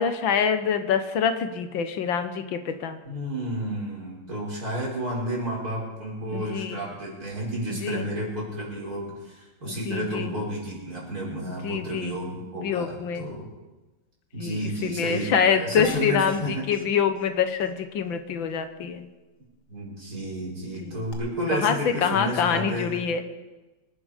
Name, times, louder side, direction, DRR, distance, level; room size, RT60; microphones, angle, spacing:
voice 1, 0.0-3.0 6.3-6.8 7.7-8.1 9.7-10.3 11.6-12.2 12.5-13.3 14.4-19.1 20.8-21.0 21.5-23.2, left 7 dB, 75° left, 9 dB, 1.8 m, -26 dB
voice 2, 3.1-13.5 14.3-16.7 19.7-23.0, right 1 dB, 45° right, -4 dB, 5.6 m, -31 dB
sound 1, 15.8-16.4 16.7-16.8 17.2-17.3 17.6-17.7 21.1-21.2, left 7 dB, 55° left, 2.0 m, -41 dB
25.0 x 11.0 x 5.1 m, 1.2 s
omnidirectional pair, 2.2 m